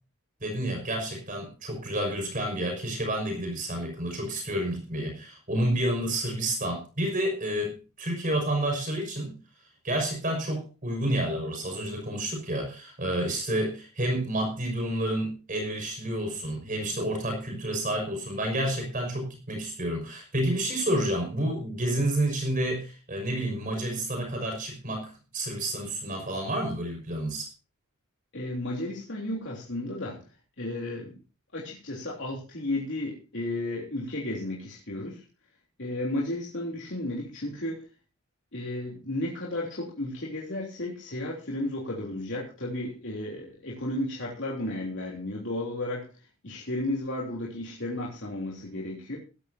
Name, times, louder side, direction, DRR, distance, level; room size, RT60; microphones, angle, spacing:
voice 1, 0.4-9.4 9.8-27.5, right 1 dB, 35° right, 3 dB, 5.8 m, -30 dB
voice 2, 28.3-30.2 30.6-31.2 31.5-35.2 35.8-37.9 38.5-46.1 46.4-49.2, left 1 dB, 55° left, -3 dB, 3.3 m, -33 dB
17.0 x 14.5 x 2.8 m, 0.33 s
head